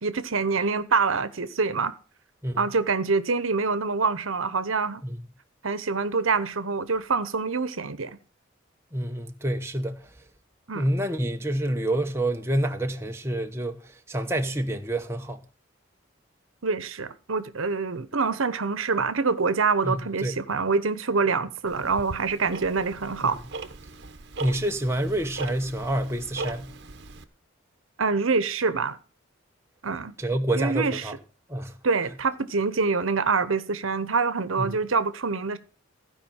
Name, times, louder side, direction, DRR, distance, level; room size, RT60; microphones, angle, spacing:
voice 1, 0.0-1.9 2.6-5.0 5.6-8.2 10.7-10.9 16.6-23.4 28.0-29.0 29.8-30.1 30.5-31.1 31.8-35.6, right 4 dB, 80° right, 0.9 m, -25 dB
voice 2, 8.9-10.1 10.7-13.8 14.1-15.4 19.8-20.4 23.2-23.3 24.4-26.7 30.2-31.1 31.5-31.7 34.6-34.8, right 1 dB, 15° right, 1.0 m, -28 dB
Tick-tock, 21.7-27.2, right 3 dB, 55° right, 1.1 m, -39 dB
15.5 x 5.2 x 7.1 m
head